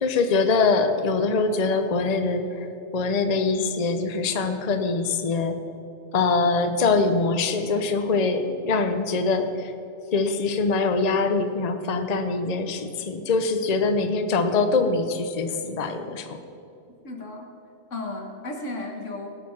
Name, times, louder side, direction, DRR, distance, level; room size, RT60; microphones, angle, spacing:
voice 1, 0.0-5.6 6.1-9.7 10.1-16.4, left 4 dB, 40° left, 7 dB, 0.8 m, -23 dB
voice 2, 17.0-17.5 17.9-19.3, left 2 dB, 90° left, 2 dB, 1.9 m, -34 dB
18.5 x 6.8 x 5.9 m, 2.6 s
omnidirectional pair, 1.2 m